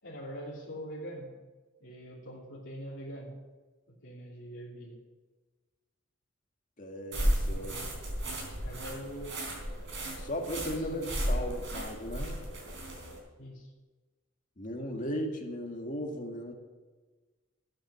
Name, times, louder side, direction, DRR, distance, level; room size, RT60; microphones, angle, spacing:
voice 1, 0.0-1.4 1.8-3.3 3.9-5.0 7.5-7.8 8.6-9.5 10.8-11.0 11.3-11.6 13.4-13.7, equal, 60° left, -6 dB, 3.0 m, -43 dB
voice 2, 6.8-7.8 10.2-12.4 14.6-16.5, equal, 40° left, 2 dB, 2.0 m, -36 dB
sound 1, 7.1-13.2, equal, 65° right, 4.3 m, -34 dB
13.0 x 9.4 x 6.2 m, 1.3 s
head